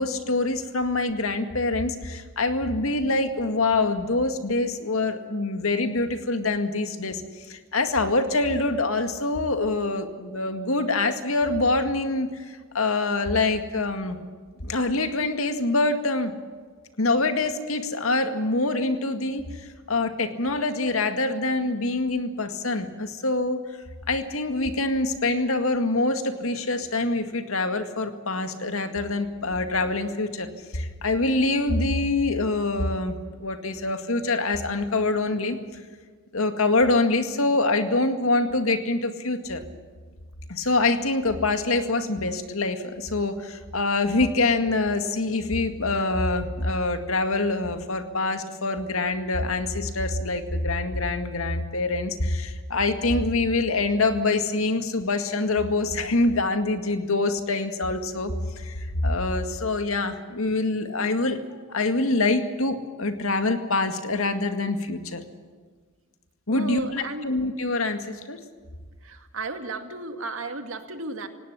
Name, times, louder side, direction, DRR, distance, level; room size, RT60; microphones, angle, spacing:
voice 1, 0.0-7.2 7.5-14.2 14.6-16.3 17.0-19.5 19.9-23.6 24.1-30.5 30.7-35.6 36.3-39.6 40.5-65.2 66.5-68.4, left 2 dB, 85° left, 7 dB, 2.1 m, -25 dB
voice 2, 66.5-67.3 69.0-71.3, right 2 dB, 75° right, 7 dB, 2.2 m, -34 dB
18.5 x 18.0 x 9.9 m, 1.5 s
head